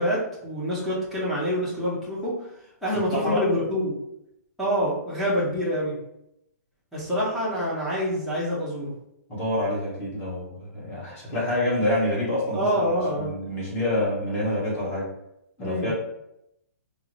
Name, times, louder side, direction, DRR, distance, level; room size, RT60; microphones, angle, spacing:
voice 1, 0.0-2.3 2.8-3.9 4.6-6.0 6.9-8.9 12.5-13.3 15.6-15.9, equal, ahead, -10 dB, 0.8 m, -26 dB
voice 2, 3.1-3.5 9.3-12.8 13.1-15.1 15.6-15.9, left 1 dB, 20° left, -6 dB, 1.1 m, -27 dB
3.8 x 2.0 x 3.0 m, 0.81 s
hypercardioid pair, 160°, 9 cm